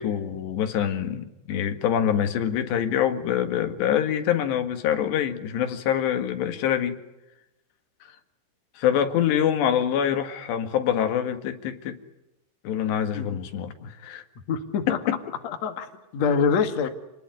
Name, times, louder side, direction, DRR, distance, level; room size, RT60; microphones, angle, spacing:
voice 1, 0.0-7.0 8.8-12.0 12.7-14.2 14.9-15.2, left 9 dB, 85° left, 4.0 m, -25 dB
voice 2, 14.5-15.0 15.4-16.9, left 6 dB, 50° left, 2.7 m, -25 dB
29.0 x 20.0 x 9.6 m
omnidirectional pair, 4.8 m